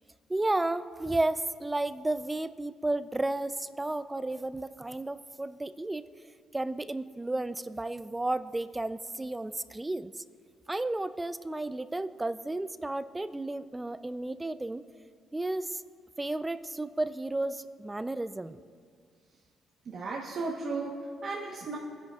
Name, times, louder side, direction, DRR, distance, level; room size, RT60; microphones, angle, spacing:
voice 1, 0.3-6.0 6.5-10.2 10.7-14.8 15.3-15.8 16.2-18.6, right 2 dB, 15° right, 12 dB, 0.4 m, -32 dB
voice 2, 19.9-21.8, right 3 dB, 60° right, -2 dB, 1.1 m, -35 dB
21.0 x 10.5 x 2.4 m, 2.1 s
cardioid pair, 90°, 0 cm